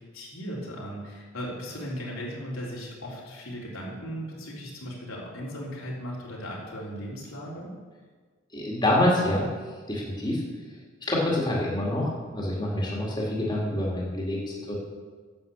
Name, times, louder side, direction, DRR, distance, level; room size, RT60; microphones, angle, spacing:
voice 1, 0.1-7.7, equal, 85° left, -5 dB, 3.6 m, -37 dB
voice 2, 8.5-9.4 9.9-10.4 11.1-14.8, left 1 dB, 20° left, -4 dB, 2.1 m, -26 dB
10.5 x 7.9 x 7.1 m, 1.5 s
head